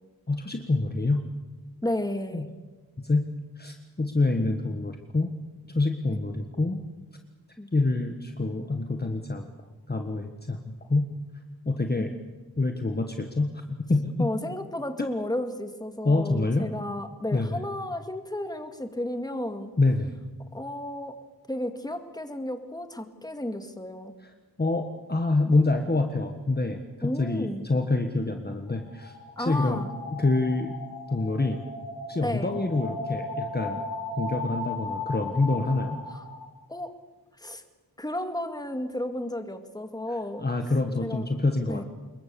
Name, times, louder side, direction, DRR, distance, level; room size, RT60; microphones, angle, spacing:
voice 1, 0.3-1.2 2.3-2.4 3.0-3.3 3.6-5.3 5.7-6.8 7.7-9.5 9.9-11.1 11.6-12.1 12.6-14.3 15.0-15.1 16.0-16.7 17.3-17.6 19.8-20.1 24.2-24.3 24.6-30.7 31.1-31.6 32.1-33.8 34.2-36.0 40.4-41.8, left 2 dB, 25° left, 5 dB, 1.5 m, -26 dB
voice 2, 1.8-2.5 7.6-7.7 12.0-12.1 14.2-19.7 20.5-21.2 21.5-24.1 27.0-27.7 29.4-29.9 32.2-32.6 36.1-36.2 36.7-36.9 37.4-37.6 38.0-40.5 41.0-41.3 41.7-41.8, left 1 dB, 10° left, 7 dB, 2.1 m, -33 dB
sound 1, 28.7-36.5, left 2 dB, 85° left, 6.5 m, -36 dB
26.5 x 22.0 x 7.1 m, 1.3 s
wide cardioid pair, 115°, 38 cm